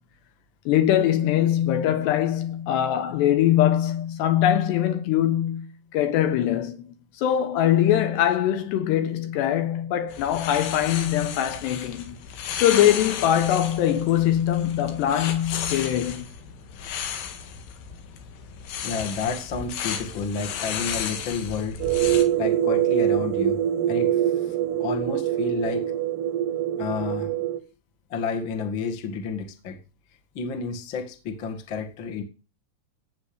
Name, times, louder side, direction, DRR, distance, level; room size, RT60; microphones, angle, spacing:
voice 1, 0.7-6.8 7.2-12.2 12.6-16.2, left 11 dB, 70° left, 3.3 m, -22 dB
sound 1, 10.1-22.2, left 8 dB, 90° left, 4.4 m, -34 dB
voice 2, 18.8-21.8 22.4-23.6 23.9-25.9 26.8-27.3 28.1-29.8 30.3-32.2, left 5 dB, 50° left, 1.5 m, -31 dB
sound 2, 21.8-27.6, right 11 dB, 75° right, 2.6 m, -24 dB
17.0 x 6.1 x 8.7 m
omnidirectional pair, 5.4 m